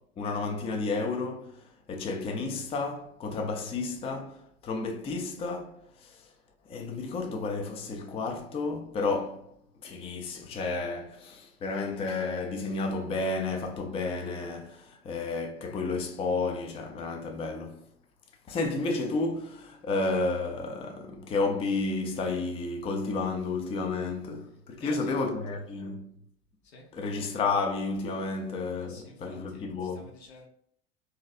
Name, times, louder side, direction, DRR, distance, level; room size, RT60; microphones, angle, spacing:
voice 1, 0.2-1.6 1.9-5.8 6.7-9.5 9.8-17.9 18.5-26.1 26.9-30.1, left 3 dB, 20° left, 0.4 m, -31 dB
voice 2, 24.8-25.7 26.6-26.9 28.8-30.5, left 2 dB, 75° left, 1.0 m, -50 dB
3.1 x 2.7 x 2.3 m
hypercardioid pair, 90°, 33 cm